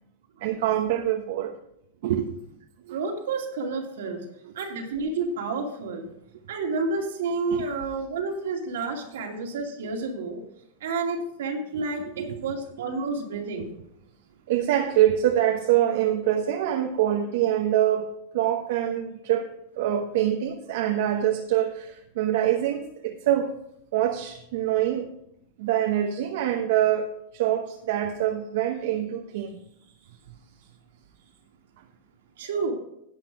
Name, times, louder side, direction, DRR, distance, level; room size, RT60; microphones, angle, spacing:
voice 1, 0.4-1.5 2.0-2.3 2.9-3.0 7.5-7.7 11.7-12.4 14.5-18.1 18.3-23.5 23.9-25.1 25.6-29.6, right 11 dB, 70° right, 4 dB, 1.0 m, -25 dB
voice 2, 2.9-4.2 4.5-6.1 6.5-10.4 10.8-13.7 32.4-32.7, right 3 dB, 90° right, 1 dB, 2.5 m, -30 dB
11.0 x 7.9 x 4.8 m, 0.76 s
supercardioid pair, 135°, 0 cm